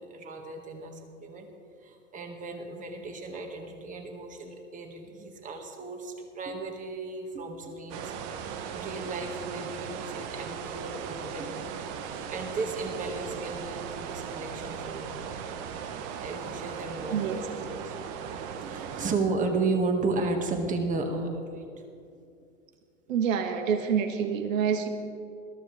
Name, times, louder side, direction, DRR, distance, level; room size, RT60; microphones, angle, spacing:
voice 1, 0.0-1.5 1.8-8.1 8.4-11.7 12.3-15.4 15.9-18.0 18.6-21.7, right 3 dB, 20° right, 3 dB, 1.7 m, -34 dB
sound 1, 7.9-19.1, right 7 dB, 35° right, 1.0 m, -38 dB
voice 2, 17.1-17.4 23.1-24.9, right 7 dB, 70° right, 6 dB, 1.4 m, -27 dB
21.0 x 13.0 x 3.3 m, 2.4 s
hypercardioid pair, 130°, 40 cm